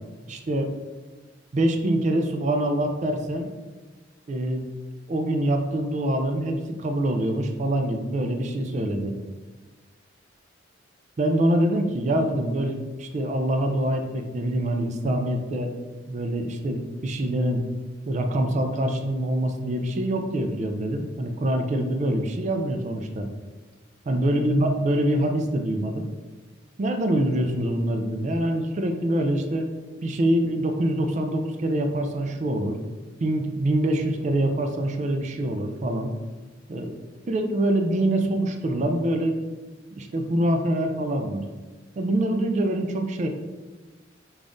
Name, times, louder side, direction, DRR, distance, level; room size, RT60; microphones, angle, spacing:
voice 1, 0.3-0.7 1.5-3.5 4.3-4.7 5.1-9.2 11.2-15.7 16.1-17.7 18.1-23.3 24.1-26.1 26.8-29.7 30.0-32.8 33.2-36.1 36.7-37.0 37.3-39.4 39.9-41.5 42.0-43.3, right 1 dB, 35° right, 5 dB, 0.3 m, -25 dB
5.1 x 2.4 x 2.5 m, 1.3 s
head